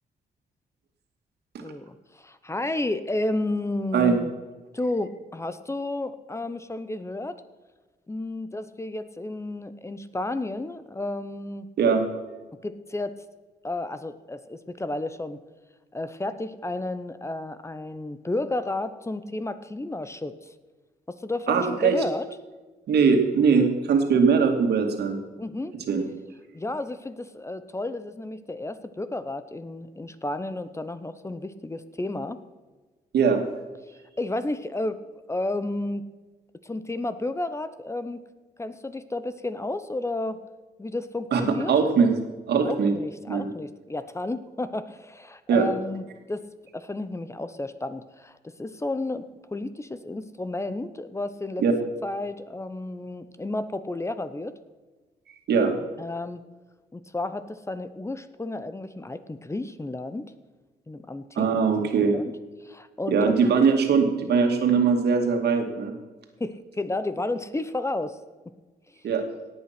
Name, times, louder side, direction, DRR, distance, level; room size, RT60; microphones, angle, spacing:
voice 1, 1.6-4.3 4.7-7.4 8.1-11.7 12.6-13.2 13.6-15.4 15.9-20.5 21.1-22.3 25.4-25.8 26.5-32.4 34.2-35.0 35.3-36.1 36.6-38.2 38.6-40.4 40.8-41.7 42.6-46.4 46.7-51.6 52.0-54.6 56.0-56.4 56.9-60.3 60.9-62.3 62.6-63.3 66.4-68.2, left 2 dB, 15° left, 12 dB, 0.9 m, -32 dB
voice 2, 21.5-22.0 22.9-25.2 25.9-26.0 33.1-33.5 41.3-41.4 41.7-42.1 42.5-42.9 43.3-43.5 45.5-45.7 51.6-51.7 55.5-55.8 61.4-62.2 63.1-65.9 69.0-69.2, right 5 dB, 80° right, 4 dB, 2.3 m, -21 dB
17.5 x 8.7 x 6.0 m, 1.3 s
cardioid pair, 95°, 17 cm